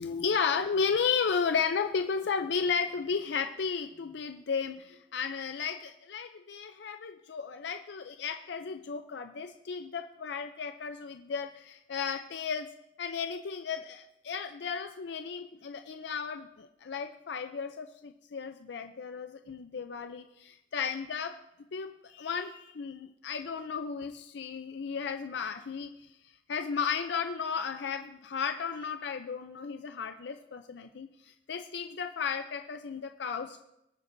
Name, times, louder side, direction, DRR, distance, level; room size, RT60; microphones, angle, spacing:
voice 1, 0.0-12.7 13.0-21.3 21.7-26.2 26.5-33.6, left 6 dB, 60° left, 7 dB, 0.5 m, -34 dB
22.0 x 8.8 x 2.6 m, 0.87 s
head